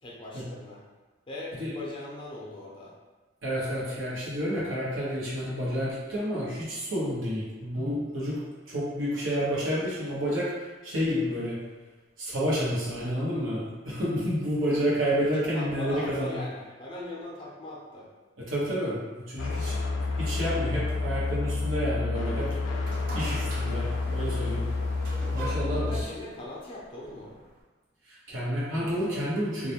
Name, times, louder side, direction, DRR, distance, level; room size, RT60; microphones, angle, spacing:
voice 1, 0.0-0.8 1.3-2.9 15.3-18.1 25.7-27.4, left 1 dB, 25° left, -4 dB, 0.5 m, -40 dB
voice 2, 3.4-11.6 12.2-16.4 18.4-19.0 19.3-19.8 20.1-22.6 23.1-24.6 25.3-25.9 28.1-29.7, equal, 90° right, -7 dB, 0.9 m, -30 dB
sound 1, 19.4-26.0, left 3 dB, 85° left, 0.3 m, -29 dB
sound 2, 22.3-27.6, right 2 dB, 45° right, 0.4 m, -43 dB
2.3 x 2.1 x 2.8 m, 1.3 s
head